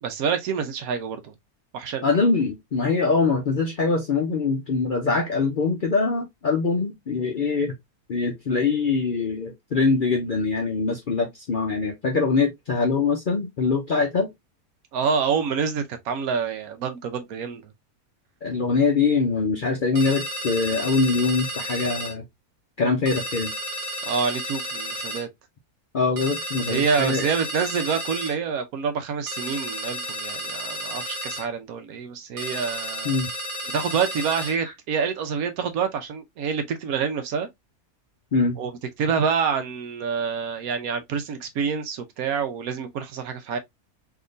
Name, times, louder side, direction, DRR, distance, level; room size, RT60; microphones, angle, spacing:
voice 1, 0.0-1.3 1.7-2.1 14.9-17.6 24.0-25.3 26.6-33.2 33.7-37.5 38.6-38.7 39.0-43.6, right 6 dB, 75° right, 1.2 m, -27 dB
voice 2, 2.0-7.7 8.1-14.3 18.4-22.2 22.8-23.5 25.9-27.3 33.0-33.3 38.3-38.6, left 4 dB, 55° left, 0.6 m, -23 dB
sound 1, 20.0-22.1 23.1-25.2 26.2-28.4 29.3-31.5 32.4-34.6, equal, 55° right, 1.6 m, -32 dB
3.5 x 2.8 x 2.5 m
omnidirectional pair, 1.5 m